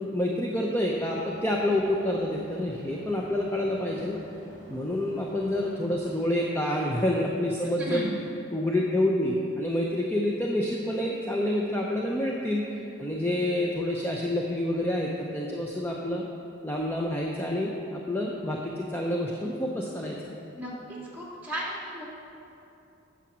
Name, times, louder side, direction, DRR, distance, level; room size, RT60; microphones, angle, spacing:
voice 1, 0.0-4.2 4.7-8.1 8.5-16.2 16.6-20.3, left 1 dB, 10° left, -2 dB, 0.5 m, -28 dB
sound 1, 0.9-6.1, left 1 dB, 80° left, 2.5 m, -49 dB
voice 2, 21.1-22.0, equal, 10° right, -6 dB, 2.2 m, -34 dB
8.7 x 7.1 x 6.1 m, 2.8 s
head